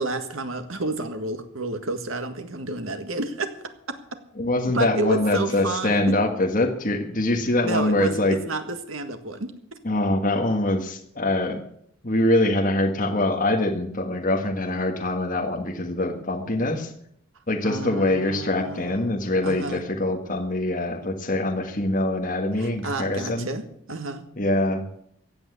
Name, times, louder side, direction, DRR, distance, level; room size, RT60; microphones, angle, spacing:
voice 1, 0.0-3.5 4.7-6.1 7.6-9.5 17.6-19.1 19.4-19.8 22.6-24.2, right 2 dB, 80° right, 7 dB, 1.8 m, -30 dB
voice 2, 4.4-8.4 9.8-11.6 12.0-16.9 17.5-23.5 24.4-24.8, left 1 dB, 40° left, 3 dB, 1.6 m, -24 dB
15.5 x 8.1 x 8.3 m, 0.69 s
head